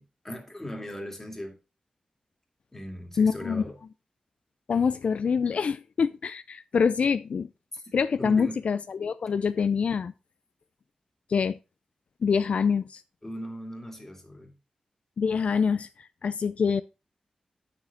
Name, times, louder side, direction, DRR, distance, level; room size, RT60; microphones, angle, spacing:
voice 1, 0.0-1.6 2.7-3.8 7.7-7.8 8.2-8.6 13.2-14.6, equal, 15° left, 2.3 m, -38 dB
voice 2, 3.2-3.6 4.7-7.5 7.9-10.1 11.3-11.6 12.2-13.0 15.2-16.8, left 6 dB, 70° left, 0.4 m, -25 dB
8.8 x 6.8 x 4.0 m
wide cardioid pair, 140°, 2 cm